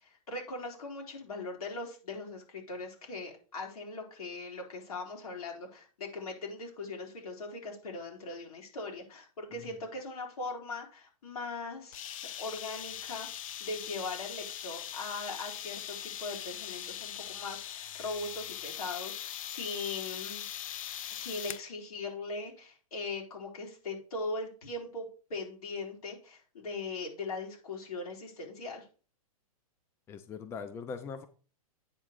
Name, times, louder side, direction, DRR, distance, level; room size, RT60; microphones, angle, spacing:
voice 1, 0.0-13.3 13.6-20.4 21.1-28.8, left 3 dB, 80° left, 0 dB, 3.6 m, -40 dB
sound 1, 11.9-21.7, left 11 dB, 65° left, 0.7 m, -41 dB
voice 2, 30.1-31.3, left 5 dB, 15° left, 10 dB, 0.5 m, -41 dB
8.8 x 3.6 x 6.6 m, 0.37 s
hypercardioid pair, 150°, 19 cm